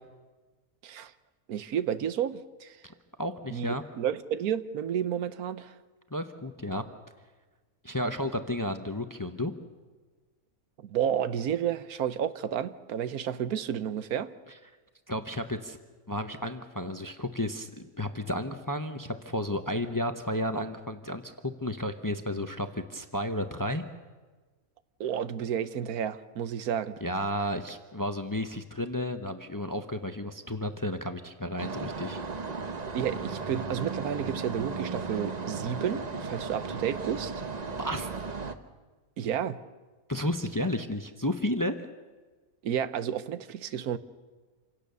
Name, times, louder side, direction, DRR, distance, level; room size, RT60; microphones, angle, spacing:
voice 1, 1.5-2.8 3.5-5.8 10.8-14.3 25.0-27.0 32.9-37.4 39.2-39.6 42.6-44.0, right 9 dB, 80° right, 14 dB, 1.3 m, -31 dB
voice 2, 2.8-3.8 6.1-6.8 7.8-9.5 15.1-15.8 16.1-21.3 21.6-23.8 27.0-32.2 37.8-38.1 40.1-41.8, left 1 dB, 15° left, 8 dB, 0.7 m, -32 dB
sound 1, 31.6-38.6, right 4 dB, 35° right, 0.9 m, -35 dB
27.0 x 17.0 x 6.9 m, 1.3 s
omnidirectional pair, 1.6 m